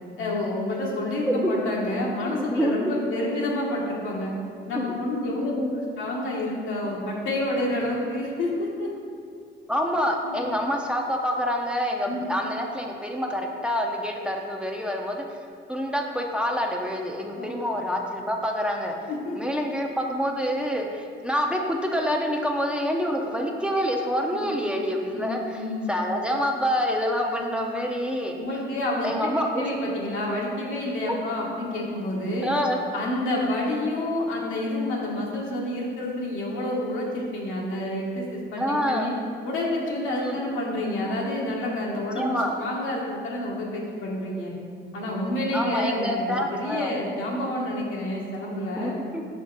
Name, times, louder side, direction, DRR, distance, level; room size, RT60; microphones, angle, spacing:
voice 1, 0.2-4.3 4.7-5.5 6.0-8.9 10.2-10.5 12.1-12.3 17.3-17.5 19.1-19.4 24.3-24.5 25.1-25.9 28.4-32.5 32.9-39.1 39.4-44.5 44.9-48.9, left 1 dB, 80° left, -3 dB, 1.2 m, -29 dB
voice 2, 1.3-1.6 2.2-2.9 4.7-5.0 5.4-5.8 9.7-15.4 15.7-18.9 19.3-25.6 25.9-28.4 29.0-30.0 31.1-31.2 32.4-32.8 38.6-39.1 40.2-40.4 42.1-42.5 45.5-46.9 48.8-49.2, equal, 5° right, 1 dB, 0.6 m, -27 dB
5.1 x 5.0 x 4.0 m, 2.3 s
cardioid pair, 90°, 20 cm